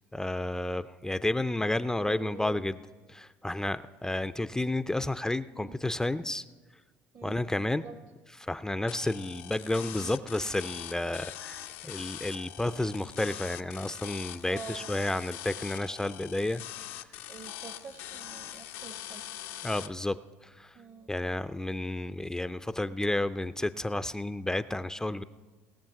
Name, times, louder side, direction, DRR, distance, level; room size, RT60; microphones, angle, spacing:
voice 1, 0.1-2.8 3.1-6.4 7.2-7.8 8.4-16.6 19.6-20.8 21.1-25.2, left 1 dB, 10° left, 13 dB, 0.4 m, -31 dB
voice 2, 2.1-2.6 5.6-5.8 7.1-7.5 7.7-7.9 14.5-15.1 17.3-19.2 20.7-21.1, right 5 dB, 45° right, 8 dB, 0.8 m, -46 dB
sound 1, 8.9-19.9, left 12 dB, 85° left, 0.7 m, -43 dB
19.0 x 7.1 x 5.8 m, 1.3 s
supercardioid pair, 85°, 6 cm